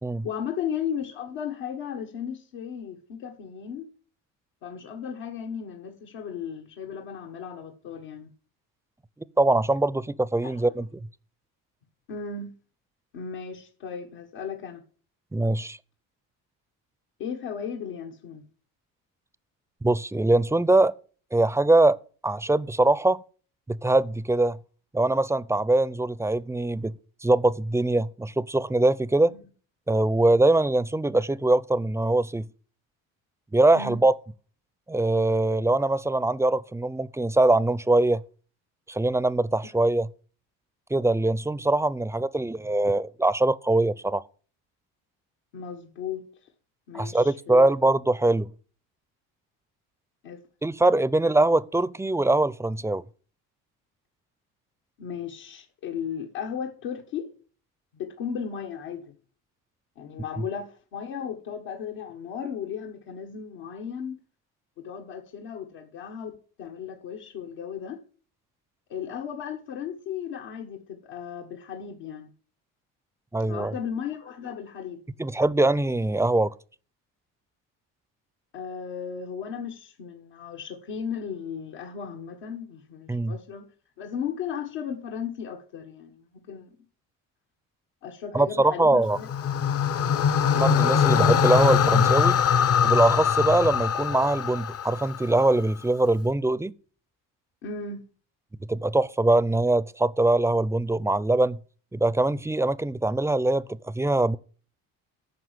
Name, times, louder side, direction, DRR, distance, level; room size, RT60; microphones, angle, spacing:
voice 1, 0.2-3.9 4.6-8.3 10.4-10.6 12.1-12.5 13.1-14.8 17.2-18.4 29.3-29.4 33.7-34.0 45.5-46.5 46.9-47.7 50.2-50.4 55.0-57.3 57.9-59.1 60.0-64.2 64.8-68.0 68.9-72.3 73.5-75.0 78.5-83.7 84.0-86.8 88.0-89.3 97.6-98.0, left 7 dB, 80° left, 1.5 m, -35 dB
voice 2, 9.4-10.9 15.3-15.8 19.8-20.9 21.3-22.0 22.2-23.2 23.7-24.6 24.9-26.9 27.2-29.3 29.9-32.5 33.5-34.2 34.9-38.2 38.9-40.1 40.9-44.2 46.9-48.5 50.6-53.0 73.3-73.7 75.2-76.5 83.1-83.4 88.3-89.2 90.5-92.4 92.8-96.7 98.7-101.6 101.9-104.4, right 2 dB, 5° right, 0.5 m, -22 dB
sound 1, 89.1-95.4, left 7 dB, 40° left, 0.6 m, -22 dB
9.6 x 5.8 x 7.3 m
supercardioid pair, 75°, 39 cm